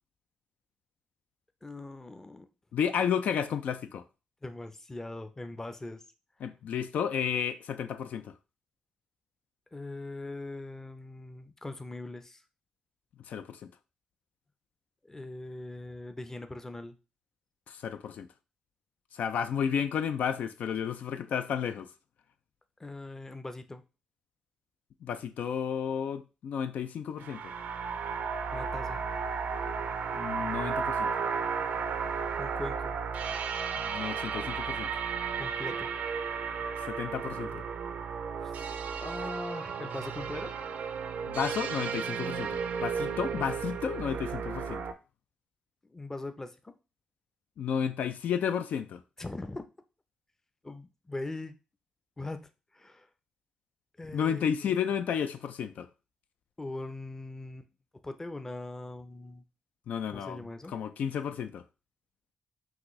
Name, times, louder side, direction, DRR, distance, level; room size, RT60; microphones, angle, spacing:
voice 1, 1.6-2.5 4.4-6.0 9.7-12.4 15.0-17.0 22.8-23.8 28.5-29.0 32.4-33.0 35.4-35.9 38.4-38.5 39.0-40.5 45.9-46.7 49.2-49.6 50.6-51.6 52.2-53.1 54.0-54.7 56.6-57.7 58.0-59.4 60.1-60.7, left 2 dB, 20° left, 0.5 m, -41 dB
voice 2, 2.7-4.0 6.4-8.3 13.3-13.6 17.7-18.3 19.1-21.9 25.0-27.5 30.1-31.1 33.8-34.9 36.9-37.6 41.3-44.8 47.6-49.0 54.1-55.9 59.9-61.6, left 8 dB, 75° left, 0.3 m, -32 dB
sound 1, 27.2-44.9, right 6 dB, 75° right, 0.4 m, -34 dB
5.9 x 2.6 x 3.1 m
cardioid pair, 80°, 3 cm